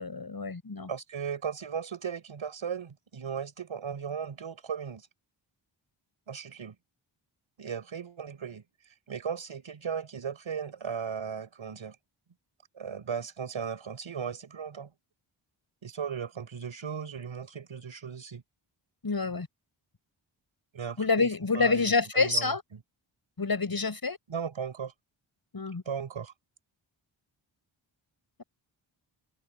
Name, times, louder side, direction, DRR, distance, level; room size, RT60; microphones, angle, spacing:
voice 1, 0.0-0.9 19.0-19.5 21.0-22.6 23.4-24.2 25.5-25.8, left 4 dB, 45° left, 7.4 m, -27 dB
voice 2, 0.9-5.1 6.3-6.8 7.6-8.6 9.1-12.0 12.8-14.9 15.8-18.4 20.7-21.3 21.5-22.6 24.3-24.9 25.9-26.3, right 7 dB, 75° right, 5.9 m, -36 dB
open air
cardioid pair, 50°, 48 cm